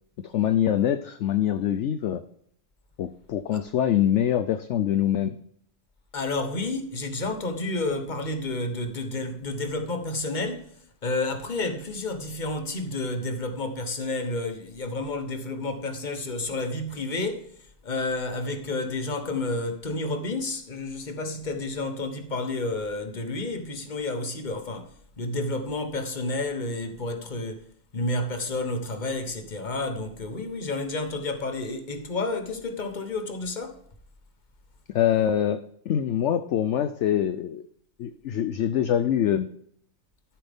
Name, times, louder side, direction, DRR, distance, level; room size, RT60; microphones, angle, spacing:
voice 1, 0.2-2.2 3.0-5.4 34.9-35.6 35.9-37.6 38.0-39.5, left 10 dB, 65° left, 0.9 m, -24 dB
voice 2, 6.1-10.7 11.0-17.5 17.8-27.6 27.9-33.8, left 2 dB, 35° left, 1.3 m, -30 dB
13.5 x 7.7 x 3.6 m
omnidirectional pair, 1.4 m